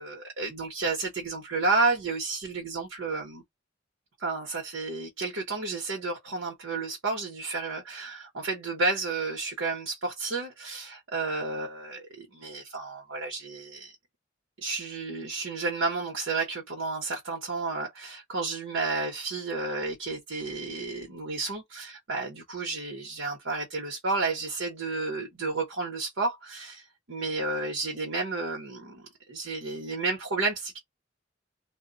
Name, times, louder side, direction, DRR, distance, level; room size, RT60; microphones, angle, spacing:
voice 1, 0.0-3.4 4.2-13.9 14.6-30.8, right 3 dB, 85° right, 0.9 m, -31 dB
2.1 x 2.0 x 3.7 m
head